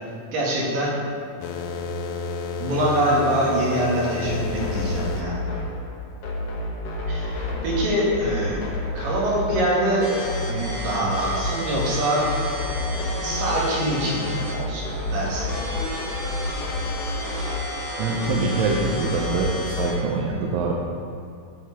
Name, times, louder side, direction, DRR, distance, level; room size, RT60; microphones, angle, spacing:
voice 1, 0.3-0.9 2.6-5.4 7.1-8.6 9.0-10.1 10.5-12.3 12.9-15.5, right 1 dB, 75° right, -5 dB, 3.7 m, -24 dB
sound 1, 1.4-5.3, left 4 dB, 80° left, 2.0 m, -31 dB
sound 2, 4.2-20.2, left 2 dB, 60° left, 1.7 m, -30 dB
sound 3, 10.0-20.0, left 1 dB, 40° left, 1.8 m, -33 dB
voice 2, 18.0-20.7, right 4 dB, 90° right, 0 dB, 2.4 m, -24 dB
12.5 x 4.8 x 4.8 m, 2.3 s
omnidirectional pair, 4.1 m